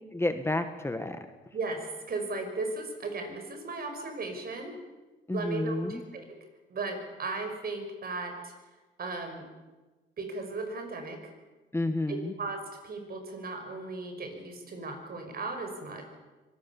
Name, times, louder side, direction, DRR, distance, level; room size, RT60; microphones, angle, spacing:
voice 1, 0.1-1.2 5.3-6.0 11.7-12.3, left 2 dB, 10° left, 8 dB, 1.5 m, -30 dB
voice 2, 1.5-4.8 5.3-6.4 6.7-8.5 9.0-9.4 10.2-11.3 12.1-16.0, right 3 dB, 50° right, 5 dB, 5.6 m, -36 dB
24.5 x 18.5 x 7.2 m, 1.2 s
cardioid pair, 90°, 20 cm